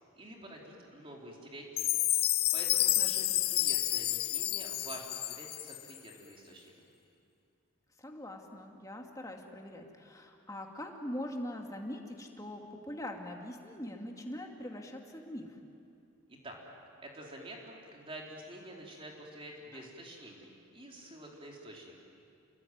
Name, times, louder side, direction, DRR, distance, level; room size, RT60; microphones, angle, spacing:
voice 1, 0.1-2.0 2.5-6.7 16.4-16.6 17.0-22.0, right 1 dB, 25° right, -1 dB, 4.1 m, -48 dB
Chime, 1.8-6.0, left 15 dB, 45° left, 0.6 m, -30 dB
voice 2, 3.0-3.4 8.0-15.6 19.7-19.8, left 1 dB, 15° left, 2 dB, 2.3 m, -42 dB
28.0 x 22.0 x 9.5 m, 2.5 s
head